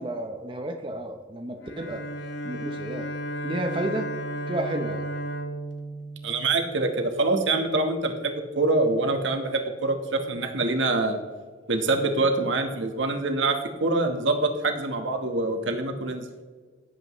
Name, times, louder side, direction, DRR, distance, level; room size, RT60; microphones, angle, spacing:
voice 1, 0.0-2.0 2.4-3.1 3.4-4.1 4.5-5.0, right 1 dB, 25° right, 3 dB, 0.7 m, -31 dB
Bowed string instrument, 1.6-7.1, right 1 dB, 70° left, 1.0 m, -34 dB
voice 2, 6.2-11.2 11.7-16.2, right 2 dB, 80° right, 5 dB, 1.3 m, -25 dB
17.0 x 7.9 x 3.1 m, 1.5 s
head